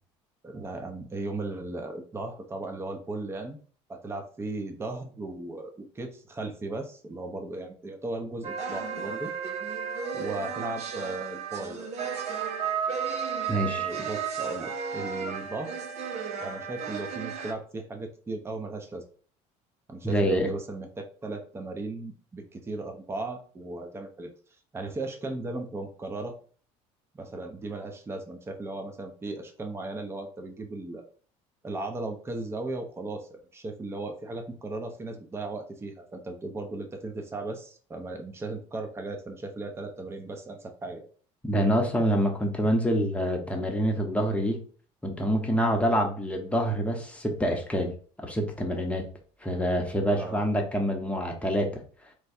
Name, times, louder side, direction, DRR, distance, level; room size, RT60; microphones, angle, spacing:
voice 1, 0.4-3.6 3.9-9.3 10.1-11.9 13.6-15.7 16.4-19.0 19.9-24.3 24.7-26.3 27.1-31.0 31.6-41.1 50.1-50.4, right 2 dB, 15° right, 4 dB, 0.8 m, -36 dB
sound 1, 8.4-17.5, right 6 dB, 50° right, 0.8 m, -33 dB
voice 2, 13.5-13.9 20.0-20.5 41.4-44.6 45.0-47.9 48.2-49.1 49.4-51.8, equal, 10° left, 2 dB, 0.9 m, -26 dB
4.6 x 2.2 x 4.2 m, 0.42 s
supercardioid pair, 105°, 15 cm